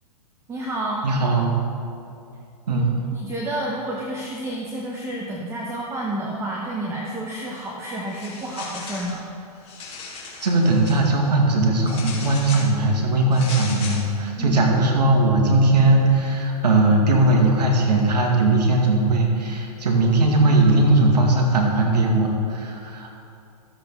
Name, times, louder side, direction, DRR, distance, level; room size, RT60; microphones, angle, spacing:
voice 1, 0.5-1.1 2.7-9.2 14.4-14.7, right 1 dB, 15° right, -2 dB, 0.9 m, -30 dB
voice 2, 1.0-1.6 2.7-2.9 10.4-23.2, right 2 dB, 85° right, 0 dB, 2.0 m, -19 dB
sound 1, 8.1-9.2 9.6-11.0 11.8-12.7 13.3-14.1, left 4 dB, 30° left, 2.2 m, -36 dB
13.0 x 7.8 x 3.7 m, 2.6 s
hypercardioid pair, 135°, 20 cm